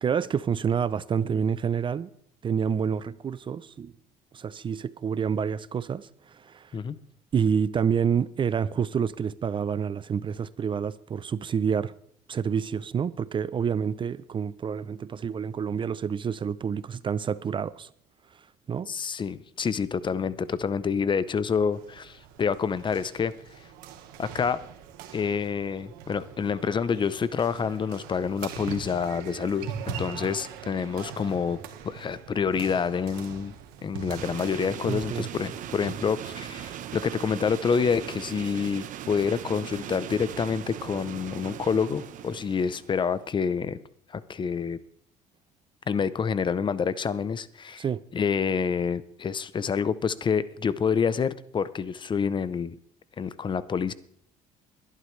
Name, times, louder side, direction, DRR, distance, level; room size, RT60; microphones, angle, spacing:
voice 1, 0.0-2.1 2.4-3.9 4.3-6.7 7.3-11.9 12.3-17.9 18.7-18.9 34.8-35.3 47.8-48.0, right 7 dB, 35° right, 0.5 m, -28 dB
voice 2, 18.9-23.3 24.2-24.6 25.1-31.6 31.8-33.5 33.8-43.8 44.1-44.8 45.9-47.8 48.1-52.8 53.2-53.9, left 6 dB, 35° left, 0.7 m, -27 dB
sound 1, 21.7-35.9, right 7 dB, 90° right, 1.5 m, -42 dB
sound 2, 34.2-43.1, right 10 dB, 60° right, 1.0 m, -39 dB
21.5 x 11.0 x 3.3 m
cardioid pair, 100°, 15 cm